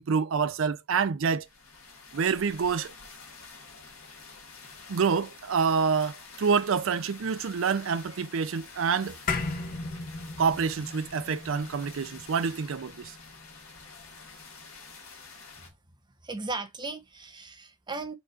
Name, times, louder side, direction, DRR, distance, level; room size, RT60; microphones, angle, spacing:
voice 1, 0.0-1.4 2.1-2.9 4.9-9.2 10.4-13.1, right 6 dB, 65° right, 0.4 m, -27 dB
sound 1, 1.4-15.7, left 4 dB, 75° left, 1.6 m, -48 dB
sound 2, 9.3-13.9, left 3 dB, 40° left, 0.6 m, -36 dB
voice 2, 16.2-18.1, right 3 dB, 20° right, 0.6 m, -36 dB
4.4 x 2.5 x 3.9 m
head